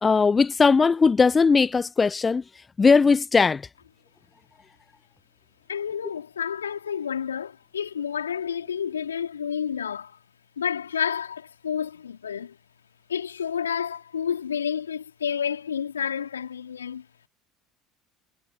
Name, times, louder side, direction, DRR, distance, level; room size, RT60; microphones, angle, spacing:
voice 1, 0.0-2.4 2.8-3.6, left 4 dB, 25° left, 0.6 m, -19 dB
voice 2, 5.7-10.2 10.6-12.6 13.1-17.1, left 8 dB, 80° left, 3.7 m, -30 dB
figure-of-eight pair, 65°, 0 cm